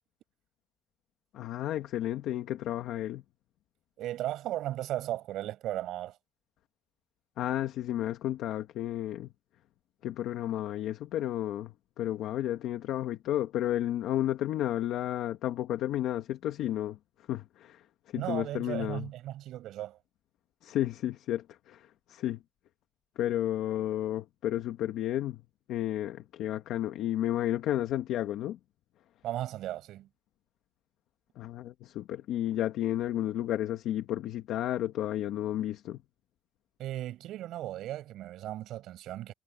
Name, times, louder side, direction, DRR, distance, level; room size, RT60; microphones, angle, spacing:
voice 1, 1.3-3.2 7.4-9.3 10.0-17.0 17.3-17.8 18.1-19.1 20.6-22.4 23.1-25.4 25.7-28.6 31.4-36.0, left 12 dB, 85° left, 1.6 m, -32 dB
voice 2, 4.0-6.2 18.1-20.0 29.2-30.1 36.8-39.3, right 13 dB, 85° right, 7.7 m, -36 dB
cardioid pair, 90°, 0 cm